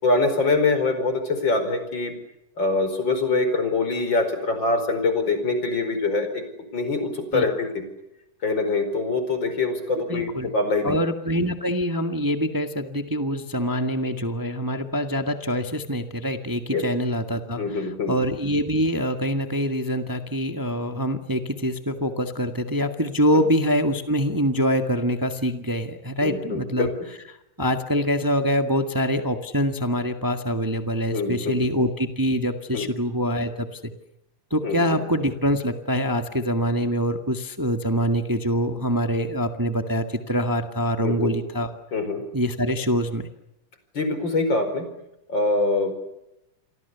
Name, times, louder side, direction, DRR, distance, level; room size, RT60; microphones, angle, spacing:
voice 1, 0.0-2.1 2.6-6.4 6.7-7.8 8.4-11.0 16.7-16.8 17.6-18.2 23.3-23.4 26.2-26.9 31.1-31.6 32.7-32.9 34.6-35.0 41.0-41.3 41.9-42.2 43.9-44.9 45.3-46.0, left 3 dB, 35° left, 9 dB, 5.2 m, -24 dB
voice 2, 10.1-10.5 10.8-26.9 27.6-33.9 34.5-41.7 42.3-43.3, equal, 25° right, 7 dB, 0.4 m, -25 dB
29.0 x 24.0 x 7.0 m, 0.87 s
omnidirectional pair, 3.9 m